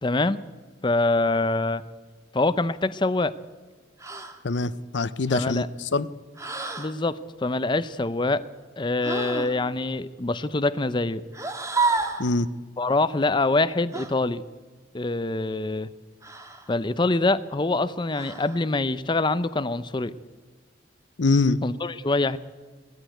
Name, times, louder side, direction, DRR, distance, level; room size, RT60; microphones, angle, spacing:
voice 1, 0.0-0.4 0.8-1.8 2.3-3.3 5.3-5.7 6.8-8.4 8.8-11.2 12.8-14.4 14.9-15.9 16.7-20.1 21.6-22.4, left 2 dB, 25° left, 14 dB, 0.6 m, -25 dB
sound 1, 4.0-4.4 6.4-6.9 9.0-9.5 11.3-12.3 13.9-14.1 16.2-16.7 18.1-18.6, right 3 dB, 15° right, 1.7 m, -29 dB
voice 2, 4.4-5.6 5.9-6.1 12.2-12.5 21.2-21.6, left 3 dB, 70° left, 16 dB, 0.7 m, -23 dB
20.0 x 14.5 x 9.2 m, 1.3 s
head